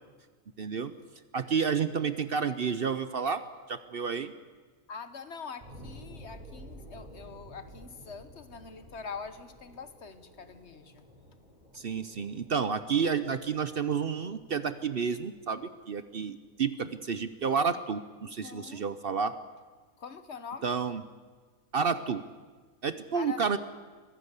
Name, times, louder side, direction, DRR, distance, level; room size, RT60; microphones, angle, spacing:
voice 1, 0.6-0.9 1.3-3.4 3.7-4.3 11.7-19.3 20.6-21.0 21.7-22.2 22.8-23.6, right 6 dB, 50° right, 13 dB, 0.9 m, -30 dB
voice 2, 4.9-11.0 18.2-18.8 20.0-20.8 23.1-23.6, left 5 dB, 55° left, 11 dB, 1.4 m, -44 dB
sound 1, 5.6-16.6 17.1-17.2, equal, 35° right, 7.4 m, -52 dB
23.5 x 16.0 x 8.2 m, 1.4 s
omnidirectional pair, 1.4 m